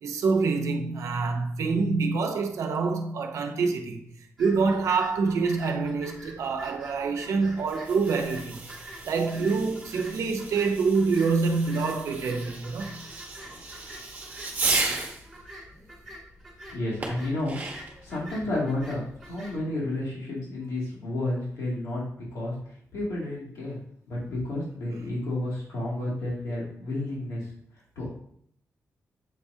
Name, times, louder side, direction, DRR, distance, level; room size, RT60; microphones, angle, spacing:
voice 1, 0.0-4.1 4.4-8.6 9.0-13.0, right 4 dB, 75° right, 0.8 m, -26 dB
sound 1, 4.4-19.6, equal, ahead, 2.3 m, -46 dB
Fireworks, 7.6-15.2 17.0-18.0, right 3 dB, 30° right, 1.2 m, -34 dB
voice 2, 16.7-17.8 18.0-22.0 22.3-22.5 22.9-27.4 28.0-28.1, left 1 dB, 90° left, 2.4 m, -31 dB
7.9 x 4.9 x 2.8 m
wide cardioid pair, 175°, 5 cm